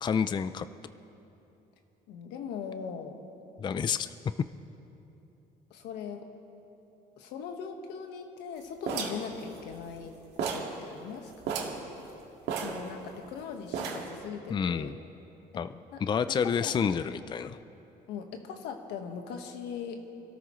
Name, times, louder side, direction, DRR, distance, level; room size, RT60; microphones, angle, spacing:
voice 1, 0.0-0.7 3.6-4.1 14.5-15.0 15.5-17.6, left 7 dB, 25° left, 12 dB, 0.4 m, -29 dB
voice 2, 2.1-3.2 5.7-6.3 7.2-11.8 12.6-14.9 15.5-15.6 15.9-16.0 16.3-16.7 18.1-20.0, left 6 dB, 85° left, 4 dB, 1.4 m, -40 dB
sound 1, 8.9-10.1 10.4-10.8 11.1-11.2 11.4-11.8 12.5-13.3 13.7-14.2, right 6 dB, 80° right, 2.0 m, -34 dB
27.5 x 13.0 x 3.1 m, 3.0 s
cardioid pair, 110°, 17 cm